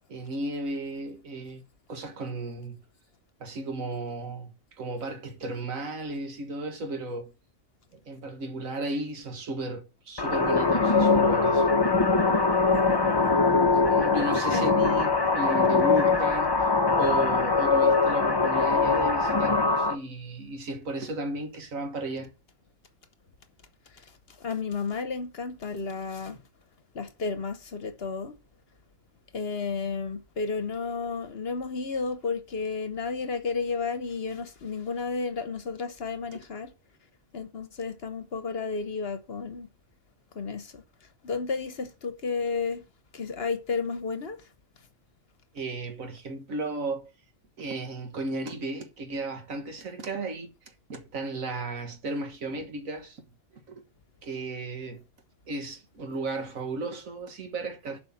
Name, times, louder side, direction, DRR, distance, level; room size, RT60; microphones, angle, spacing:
voice 1, 0.1-1.6 1.9-2.8 3.4-7.3 7.9-11.7 13.7-16.5 16.9-22.3 45.5-47.1 47.6-50.5 50.9-53.2 53.7-53.8 54.2-55.0 55.5-58.0, right 2 dB, 80° right, 1.8 m, -34 dB
sound 1, 10.2-19.9, left 4 dB, 25° left, 0.7 m, -22 dB
voice 2, 24.4-26.4 26.9-28.3 29.3-36.7 37.3-39.7 40.3-40.8 41.2-42.8 43.1-44.4, left 4 dB, 50° left, 1.1 m, -32 dB
7.7 x 5.2 x 7.2 m
omnidirectional pair, 1.4 m